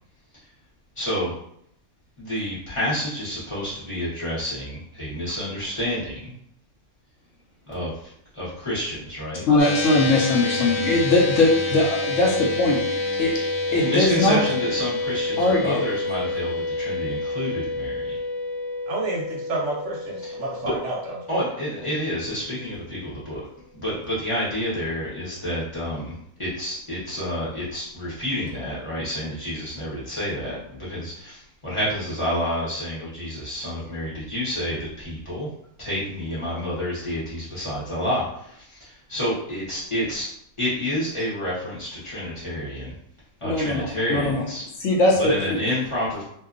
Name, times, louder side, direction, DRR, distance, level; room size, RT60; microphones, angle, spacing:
voice 1, 1.0-1.3 2.2-6.4 7.7-9.4 13.7-18.0 20.2-20.7 21.3-23.4 23.7-35.5 35.8-40.3 40.6-42.9 43.4-44.6 45.2-46.2, equal, 25° left, -9 dB, 0.7 m, -29 dB
voice 2, 9.5-14.4 15.4-15.8 43.4-44.4 44.8-45.6, left 2 dB, 70° left, -3 dB, 0.9 m, -21 dB
sound 1, 9.6-22.1, left 2 dB, 85° left, 1.1 m, -28 dB
voice 3, 18.9-21.2, right 2 dB, 65° right, -3 dB, 0.8 m, -30 dB
2.6 x 2.2 x 2.4 m, 0.70 s
omnidirectional pair, 1.5 m